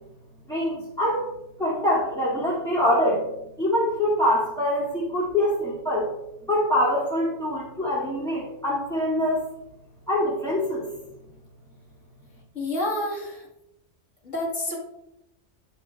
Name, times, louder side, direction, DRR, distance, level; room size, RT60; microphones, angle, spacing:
voice 1, 0.5-1.3 1.6-3.2 3.6-6.1 6.5-9.4 10.1-10.9, left 1 dB, 5° left, -8 dB, 2.6 m, -24 dB
voice 2, 12.5-13.5 14.2-14.8, left 1 dB, 85° left, -1 dB, 2.3 m, -28 dB
12.0 x 8.9 x 2.5 m, 0.86 s
omnidirectional pair, 1.2 m